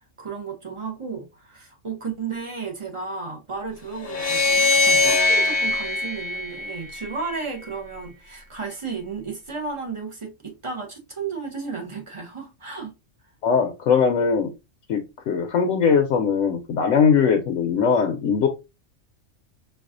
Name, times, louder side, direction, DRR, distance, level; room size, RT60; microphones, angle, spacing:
voice 1, 0.2-12.9, right 5 dB, 35° right, 0.6 m, -33 dB
sound 1, 4.0-7.3, left 3 dB, 50° left, 0.7 m, -21 dB
voice 2, 13.4-14.5 14.9-18.5, left 6 dB, 80° left, 0.9 m, -20 dB
4.1 x 2.4 x 2.4 m
omnidirectional pair, 1.3 m